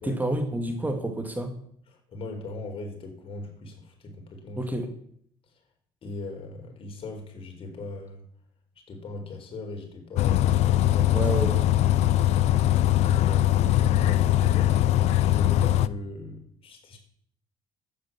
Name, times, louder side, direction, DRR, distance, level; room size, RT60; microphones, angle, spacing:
voice 1, 0.0-1.5 4.6-4.9 11.1-11.6, right 1 dB, 15° right, 6 dB, 2.2 m, -29 dB
voice 2, 1.9-4.7 6.0-8.2 8.9-11.2 13.0-14.8 15.1-17.0, left 2 dB, 50° left, 3 dB, 4.5 m, -39 dB
Bus, 10.2-15.9, left 13 dB, 70° left, 0.6 m, -21 dB
12.0 x 9.4 x 7.4 m, 0.66 s
supercardioid pair, 80°, 12 cm